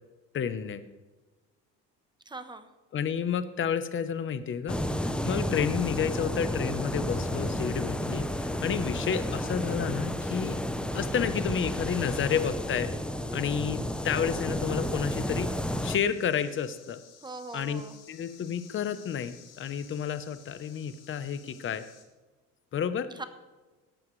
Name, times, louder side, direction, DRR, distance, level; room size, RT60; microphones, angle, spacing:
voice 1, 0.3-0.8 2.9-10.6 10.9-12.9 13.3-15.5 15.8-17.0 17.5-17.8 18.1-21.8 22.7-23.1, left 8 dB, 35° left, 12 dB, 0.9 m, -30 dB
voice 2, 2.3-2.7 17.2-18.0 23.2-23.3, right 3 dB, 15° right, 10 dB, 0.9 m, -40 dB
sound 1, 4.7-16.0, left 1 dB, 5° left, 0.6 m, -31 dB
sound 2, 15.6-22.0, left 8 dB, 60° left, 2.3 m, -55 dB
17.5 x 11.5 x 3.2 m, 1.2 s
cardioid pair, 140°, 35 cm